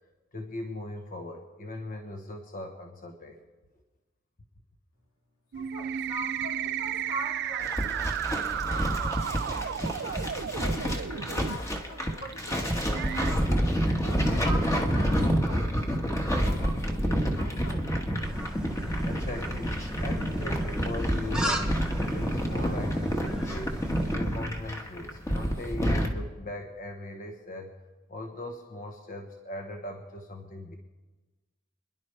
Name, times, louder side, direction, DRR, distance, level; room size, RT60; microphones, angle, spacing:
voice 1, 0.3-3.4 19.0-21.7 22.1-23.7 24.1-27.7 28.1-30.8, left 1 dB, 45° left, 3 dB, 1.1 m, -39 dB
voice 2, 5.5-10.3 10.7-13.5 14.0-17.8, equal, 85° left, -1 dB, 3.1 m, -43 dB
sound 1, 5.5-11.6 12.3-12.4 12.9-13.3, right 9 dB, 55° right, 0.4 m, -33 dB
sound 2, 7.6-26.1, equal, 15° left, 1.4 m, -28 dB
sound 3, 18.2-24.2, equal, 5° right, 1.1 m, -36 dB
29.5 x 11.0 x 3.3 m, 1.2 s
head